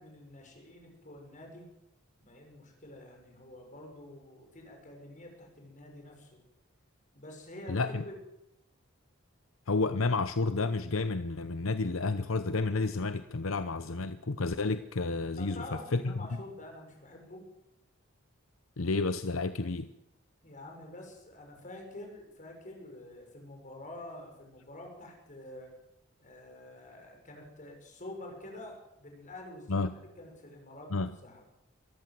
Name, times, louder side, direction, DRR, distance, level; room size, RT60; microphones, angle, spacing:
voice 1, 0.0-1.7 2.2-6.4 7.1-8.2 15.4-17.5 20.4-25.7 26.2-31.4, left 1 dB, 40° left, 2 dB, 6.5 m, -47 dB
voice 2, 7.7-8.0 9.7-16.2 18.8-19.9 29.7-29.9 30.9-31.1, left 3 dB, 75° left, 12 dB, 0.8 m, -31 dB
23.0 x 14.5 x 7.8 m, 0.83 s
head